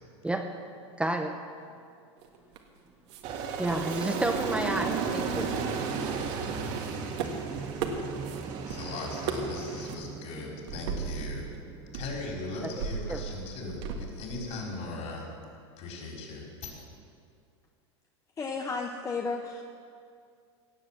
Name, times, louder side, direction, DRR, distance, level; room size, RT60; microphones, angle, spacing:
voice 1, 1.0-1.4 3.6-5.5 13.1-13.2, right 1 dB, 5° right, 4 dB, 0.9 m, -30 dB
sound 1, 2.2-2.8 3.1-3.2 3.6-4.5 4.8-6.1 6.5-8.8 9.0-9.6 9.9-10.0 10.7-11.6 11.9-14.6, right 7 dB, 65° right, 1.8 m, -38 dB
Aircraft, 3.2-9.9, right 5 dB, 50° right, 2.1 m, -34 dB
sound 2, 5.4-13.0, right 7 dB, 20° right, 0.5 m, -43 dB
voice 2, 8.6-11.5 11.9-15.3 15.8-16.7, left 3 dB, 45° left, -1 dB, 4.6 m, -38 dB
voice 3, 18.4-19.6, left 4 dB, 20° left, 3 dB, 1.0 m, -33 dB
17.5 x 7.9 x 7.4 m, 2.3 s
hypercardioid pair, 105°, 15 cm